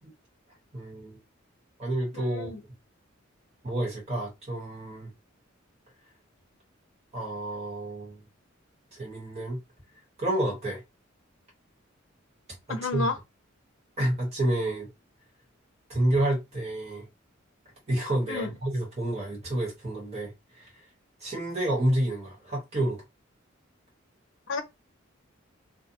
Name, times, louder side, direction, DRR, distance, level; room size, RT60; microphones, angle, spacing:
voice 1, 0.7-1.2 1.8-2.5 3.6-5.1 7.1-8.2 8.9-9.6 10.2-10.8 12.7-13.1 14.0-14.9 15.9-17.1 17.9-20.9 21.2-23.0, right 1 dB, 30° right, 1.2 m, -29 dB
voice 2, 2.1-2.6 12.7-13.2 18.3-18.5 24.5-24.6, left 3 dB, 65° left, 0.5 m, -31 dB
2.5 x 2.2 x 2.7 m
head